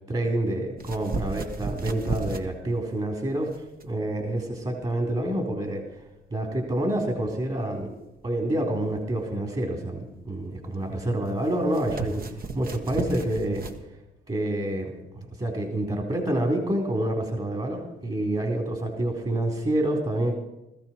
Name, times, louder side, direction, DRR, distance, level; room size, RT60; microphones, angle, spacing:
voice 1, 0.1-3.5 3.8-5.8 6.3-7.9 8.2-13.7 14.3-20.4, right 1 dB, 30° right, 2 dB, 3.9 m, -28 dB
sound 1, 0.8-13.8, right 4 dB, 45° right, 1.8 m, -37 dB
20.0 x 15.0 x 4.6 m, 0.95 s
cardioid pair, 90°, 20 cm